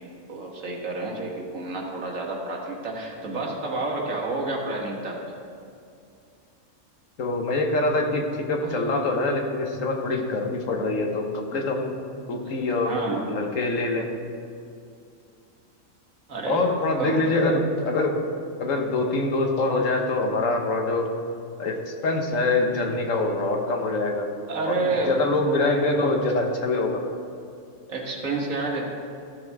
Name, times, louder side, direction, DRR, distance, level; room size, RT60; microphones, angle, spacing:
voice 1, 0.3-5.2 8.6-8.8 12.4-13.2 16.3-16.7 17.0-17.1 24.5-25.1 27.9-28.9, right 3 dB, 90° right, -1 dB, 1.9 m, -29 dB
voice 2, 7.2-12.0 12.3-14.1 16.5-18.2 18.6-21.1 21.6-24.3 24.7-27.0, left 2 dB, 80° left, 2 dB, 1.5 m, -24 dB
14.5 x 6.9 x 3.5 m, 2.5 s
omnidirectional pair, 1.3 m